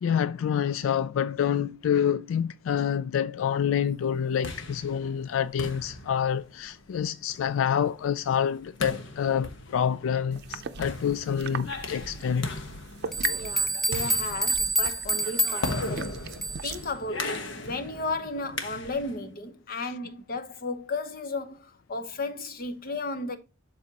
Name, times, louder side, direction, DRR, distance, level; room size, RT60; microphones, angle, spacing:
voice 1, 0.0-12.5, left 8 dB, 85° left, 0.3 m, -27 dB
sound 1, 4.1-19.3, left 2 dB, 65° left, 1.2 m, -38 dB
sound 2, 10.3-16.9, right 6 dB, 55° right, 0.6 m, -40 dB
sound 3, 12.7-12.8 13.1-16.8, right 1 dB, ahead, 0.7 m, -28 dB
voice 2, 13.3-16.3 16.6-23.4, left 3 dB, 50° left, 0.9 m, -34 dB
12.0 x 4.2 x 2.9 m
head